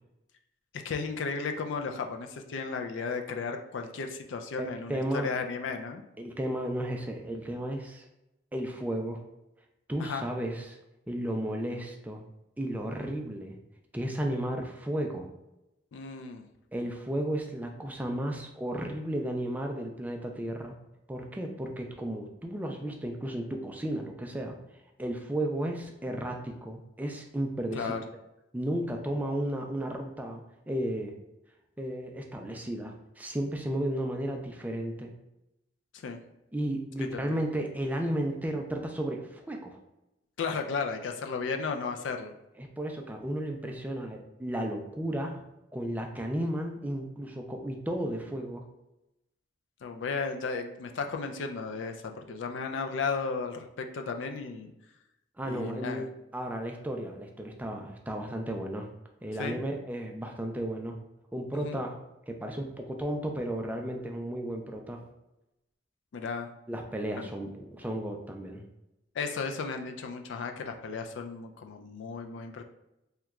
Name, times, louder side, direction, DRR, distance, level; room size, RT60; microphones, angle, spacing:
voice 1, 0.8-6.0 10.0-10.3 15.9-16.5 27.7-28.0 36.0-36.2 37.0-37.4 40.4-42.3 49.8-54.7 55.4-56.1 59.4-59.6 61.6-61.8 66.1-66.5 67.2-67.3 69.1-72.6, left 4 dB, 75° left, 5 dB, 0.4 m, -34 dB
voice 2, 4.6-5.3 6.2-8.0 8.5-9.2 9.9-10.8 11.1-12.2 12.6-13.6 13.9-15.3 16.7-20.8 21.1-24.6 25.0-28.0 28.5-31.1 31.8-35.1 36.5-39.8 42.6-45.4 45.7-48.6 55.4-56.0 56.3-58.9 59.2-61.0 61.3-62.0 62.3-65.0 66.7-68.6, right 1 dB, 10° right, 2 dB, 0.3 m, -33 dB
2.9 x 2.2 x 3.5 m, 0.91 s
head